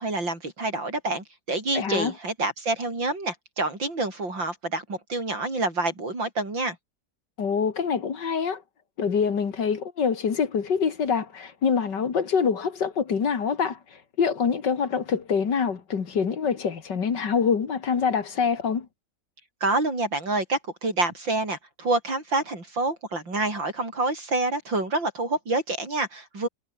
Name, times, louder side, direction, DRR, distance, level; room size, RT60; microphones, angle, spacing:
voice 1, 0.0-6.8 19.6-26.5, right 2 dB, 85° right, 7.8 m, -27 dB
voice 2, 1.7-2.1 7.4-8.6 9.0-13.8 14.2-18.9, left 6 dB, 70° left, 2.6 m, -25 dB
omnidirectional pair, 2.0 m